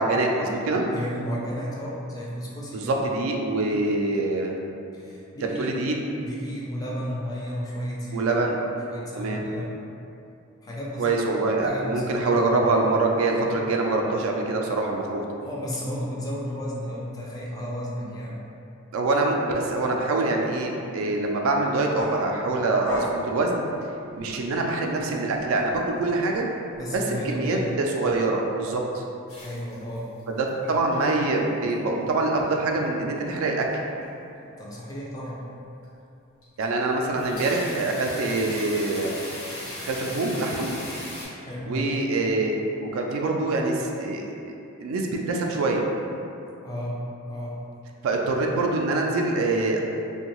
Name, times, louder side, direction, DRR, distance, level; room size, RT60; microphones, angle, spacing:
voice 1, 0.0-0.9 2.7-4.5 5.4-6.0 8.1-8.6 9.2-9.5 11.0-15.3 18.9-23.6 24.2-26.5 26.9-29.0 30.3-33.7 36.6-39.1 39.8-40.7 41.7-42.5 42.8-44.6 44.8-45.9 48.0-49.8, right 2 dB, 75° right, 1 dB, 0.3 m, -25 dB
voice 2, 0.9-3.0 4.9-5.7 6.2-8.5 8.9-9.7 10.6-11.0 11.6-12.4 15.4-18.4 26.8-27.8 29.4-30.1 34.6-35.4 41.4-41.9 46.6-47.0 47.3-47.6, equal, 20° left, -5 dB, 0.3 m, -33 dB
sound 1, 21.9-24.6 25.0-27.0, left 1 dB, 60° left, 0.7 m, -37 dB
sound 2, 29.3-30.2 30.5-30.9 31.4-32.0 32.4-32.5 33.3-33.7 34.0-34.2 34.7-34.8 35.3-35.4 35.8-35.9 36.4-36.7 37.0-41.2, left 1 dB, 90° left, 1.0 m, -38 dB
2.7 x 2.2 x 2.9 m, 2.6 s
head